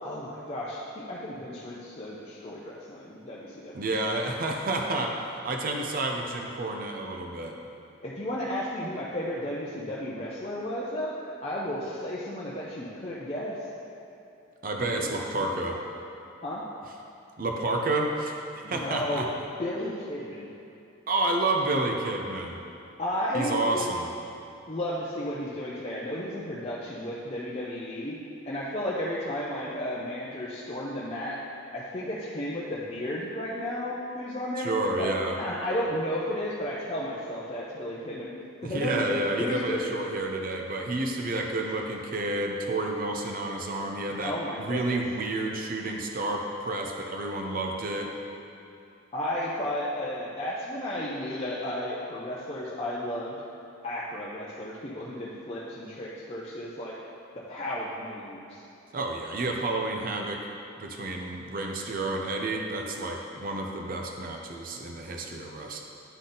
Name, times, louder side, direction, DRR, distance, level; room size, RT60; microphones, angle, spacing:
voice 1, 0.0-3.9 8.0-13.6 14.8-16.0 16.4-16.6 18.6-19.2 19.6-20.5 23.0-23.9 24.7-28.1 28.5-31.4 31.7-34.7 35.0-35.1 35.4-38.3 38.6-39.9 44.2-45.0 49.1-53.4 53.8-56.9 57.5-58.6, left 1 dB, 30° left, -7 dB, 0.6 m, -33 dB
voice 2, 3.7-7.6 14.6-15.8 17.4-18.4 18.7-19.3 21.1-22.6 23.3-24.1 34.6-35.4 38.6-48.1 58.9-60.5 60.8-65.8, right 2 dB, 45° right, 2 dB, 0.6 m, -30 dB
10.0 x 4.0 x 3.9 m, 2.7 s
head